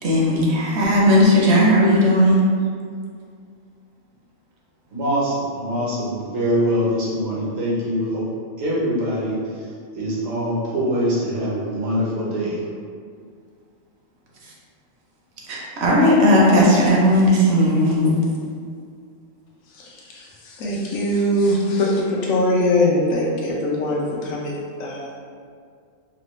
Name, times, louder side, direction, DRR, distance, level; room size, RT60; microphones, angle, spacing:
voice 1, 0.0-2.4 14.4-14.5 15.5-18.2, equal, 65° right, -4 dB, 0.8 m, -16 dB
voice 2, 4.9-8.2 8.6-9.7 9.9-12.7, equal, 85° right, -6 dB, 1.2 m, -23 dB
voice 3, 19.7-25.2, left 1 dB, 85° left, -3 dB, 1.0 m, -22 dB
3.2 x 2.1 x 3.0 m, 2.2 s
omnidirectional pair, 1.3 m